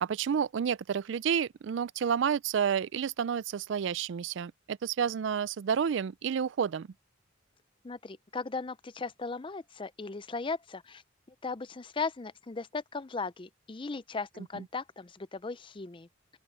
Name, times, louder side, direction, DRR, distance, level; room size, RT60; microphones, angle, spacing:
voice 1, 0.0-6.9 14.5-14.6, right 7 dB, 65° right, 0.3 m, -30 dB
voice 2, 7.8-11.0 11.4-16.1, left 4 dB, 25° left, 0.5 m, -37 dB
open air
head